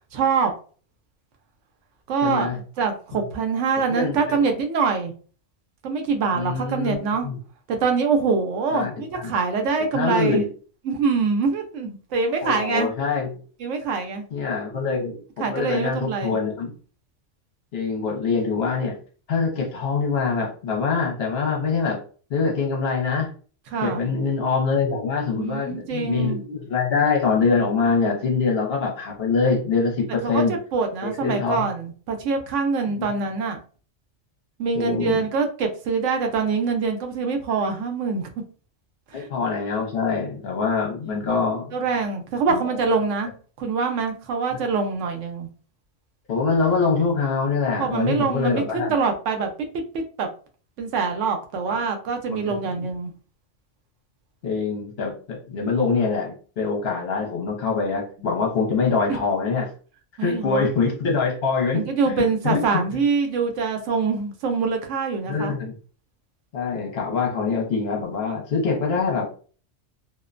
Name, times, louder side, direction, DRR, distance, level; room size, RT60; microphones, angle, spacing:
voice 1, 0.1-0.5 2.1-5.1 5.8-7.3 7.7-10.4 10.8-12.9 13.6-14.2 15.4-16.4 23.7-24.1 25.4-26.4 30.2-33.6 34.6-38.3 39.1-39.3 41.1-41.2 41.7-43.3 43.6-45.5 47.7-49.5 50.2-50.3 50.8-53.1 59.1-59.2 60.2-60.7 61.7-65.6, right 5 dB, 85° right, 5 dB, 0.9 m, -24 dB
voice 2, 2.2-2.6 3.9-4.4 6.3-7.4 8.7-9.3 9.9-10.5 12.4-13.3 14.3-16.7 17.7-19.0 19.3-22.0 22.3-23.3 23.8-30.5 31.0-31.7 32.9-33.1 34.7-35.2 39.1-41.8 42.5-42.7 44.5-44.6 46.3-48.9 51.7-51.8 52.3-52.9 54.4-59.7 60.2-61.8 62.1-62.2 62.4-62.6 65.2-65.8 66.5-69.3, left 4 dB, 60° left, 0 dB, 0.9 m, -24 dB
2.5 x 2.1 x 2.4 m, 0.40 s
omnidirectional pair, 1.2 m